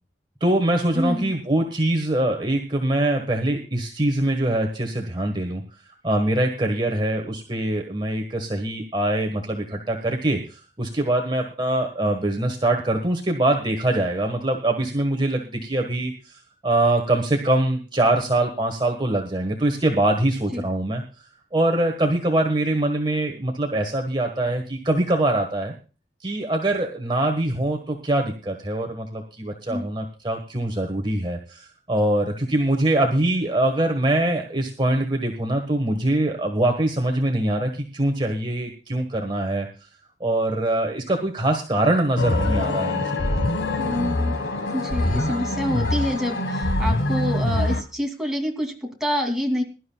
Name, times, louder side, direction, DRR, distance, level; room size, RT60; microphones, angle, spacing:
voice 1, 0.4-5.6 6.0-21.0 21.5-25.7 26.2-39.7 40.2-43.2, right 1 dB, 25° right, 2 dB, 1.5 m, -23 dB
voice 2, 0.9-1.3 20.5-20.6 29.7-29.9 43.8-44.3 44.7-49.6, equal, 5° right, 0 dB, 2.7 m, -27 dB
sound 1, 42.2-47.8, left 2 dB, 90° left, 1.7 m, -24 dB
22.0 x 12.0 x 2.3 m, 0.34 s
head